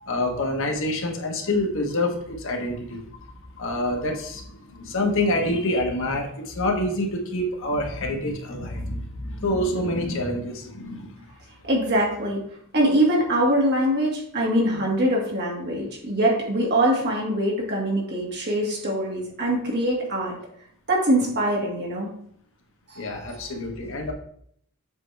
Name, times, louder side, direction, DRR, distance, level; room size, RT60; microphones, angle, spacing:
voice 1, 0.1-3.1 3.6-4.4 4.8-11.1 23.0-24.1, left 1 dB, 60° left, 2 dB, 1.2 m, -26 dB
voice 2, 11.7-12.4 12.7-20.3 20.9-22.1 22.9-23.4, right 1 dB, 50° right, -2 dB, 2.1 m, -23 dB
7.6 x 4.4 x 3.3 m, 0.66 s
head